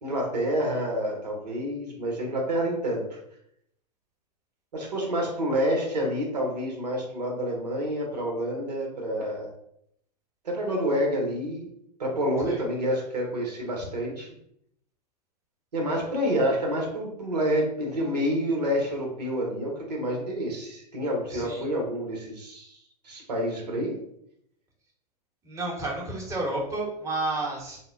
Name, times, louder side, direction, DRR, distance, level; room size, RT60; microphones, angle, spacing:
voice 1, 0.0-3.2 4.7-9.5 10.4-11.7 12.0-14.3 15.7-22.8 23.0-23.9, equal, 80° right, 0 dB, 1.0 m, -28 dB
voice 2, 21.3-21.6 25.4-27.8, right 2 dB, 15° right, -3 dB, 0.9 m, -31 dB
3.4 x 2.1 x 2.4 m, 0.73 s
hypercardioid pair, 100°, 21 cm